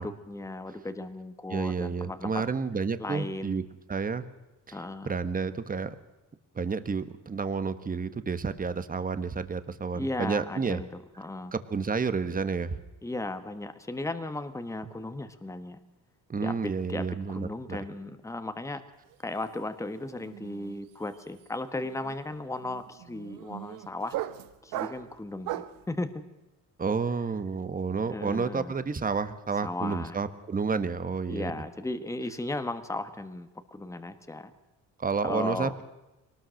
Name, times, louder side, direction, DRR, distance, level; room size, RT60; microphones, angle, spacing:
voice 1, 0.0-2.4 3.0-3.6 4.7-5.1 9.9-11.5 13.0-15.8 16.4-18.8 19.2-24.2 24.6-26.2 28.0-28.7 29.6-30.2 31.3-34.5 35.2-35.7, left 2 dB, 10° left, 9 dB, 1.4 m, -36 dB
voice 2, 1.5-3.6 3.9-4.2 4.7-4.8 5.0-5.9 6.5-10.8 11.5-12.8 16.3-17.8 26.8-31.5 35.0-35.8, right 5 dB, 25° right, 12 dB, 1.4 m, -30 dB
sound 1, 19.1-19.4 19.6-25.9, right 13 dB, 85° right, 1.2 m, -39 dB
22.0 x 19.5 x 6.5 m, 1.0 s
cardioid pair, 105°, 33 cm